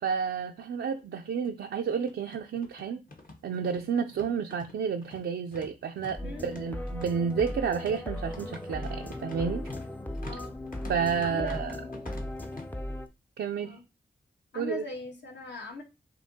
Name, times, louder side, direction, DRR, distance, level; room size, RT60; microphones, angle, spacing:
voice 1, 0.0-3.0 3.4-9.7 10.9-11.7 13.4-13.8 14.6-14.8, right 6 dB, 85° right, 0.4 m, -31 dB
sound 1, 0.6-0.7 1.0-1.1 1.9-12.7, left 2 dB, 50° left, 1.0 m, -47 dB
voice 2, 6.2-6.6 10.2-10.6 11.2-12.0 13.6-13.8 14.5-15.8, left 3 dB, 70° left, 1.2 m, -41 dB
sound 2, 6.2-13.1, left 1 dB, 10° left, 0.5 m, -37 dB
5.1 x 2.8 x 2.7 m
cardioid pair, 60°, 19 cm